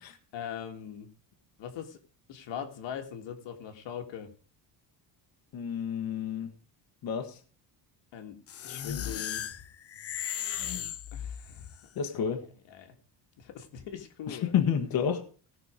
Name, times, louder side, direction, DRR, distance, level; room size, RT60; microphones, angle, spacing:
voice 1, 0.3-1.1 1.6-2.0 2.3-4.3 8.1-8.4 8.6-9.6 11.1-11.7 12.1-12.3 12.7-12.9 13.4-14.5, left 8 dB, 75° left, 5 dB, 1.9 m, -41 dB
voice 2, 5.5-6.5 7.0-7.3 12.0-12.4 14.3-15.2, left 8 dB, 50° left, 6 dB, 1.5 m, -29 dB
sound 1, 8.5-11.7, left 10 dB, 35° left, 0.5 m, -36 dB
17.5 x 6.1 x 5.1 m, 0.39 s
cardioid pair, 170°, 45 cm